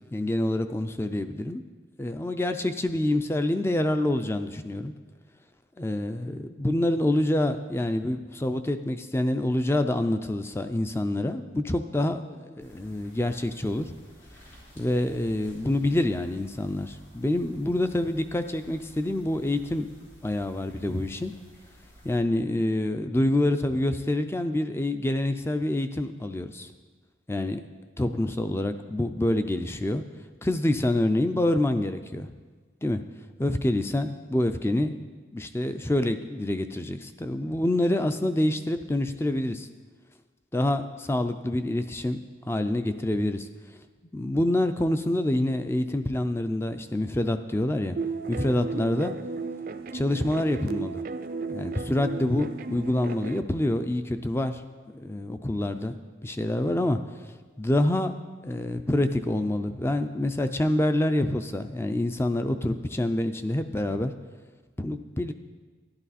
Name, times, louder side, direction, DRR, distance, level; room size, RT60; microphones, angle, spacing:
voice 1, 0.1-1.6 2.0-4.9 5.8-13.9 14.8-19.9 20.2-21.3 22.0-26.7 27.3-27.6 28.0-30.0 30.4-32.3 32.8-33.0 33.4-35.0 35.3-39.7 40.5-42.2 42.5-43.5 44.1-48.0 48.3-49.1 49.9-51.0 51.5-54.6 54.9-57.0 57.2-58.1 58.4-64.1 64.8-65.3, left 1 dB, 15° left, 9 dB, 0.4 m, -27 dB
sound 1, 12.6-22.2, equal, 85° left, 3.6 m, -53 dB
sound 2, 48.0-53.4, right 4 dB, 45° right, 0.4 m, -34 dB
11.5 x 11.5 x 4.2 m, 1.4 s
head